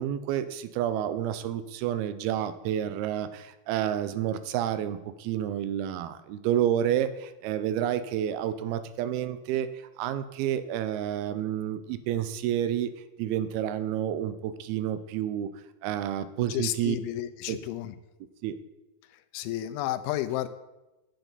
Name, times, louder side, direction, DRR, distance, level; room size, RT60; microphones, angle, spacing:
voice 1, 0.0-12.9 13.2-15.5 15.8-17.0 17.5-17.6 18.4-18.6, right 10 dB, 90° right, 11 dB, 2.5 m, -29 dB
voice 2, 16.5-17.9 19.3-20.5, left 14 dB, 90° left, 12 dB, 2.4 m, -31 dB
9.2 x 8.1 x 4.0 m, 1.0 s
omnidirectional pair, 4.3 m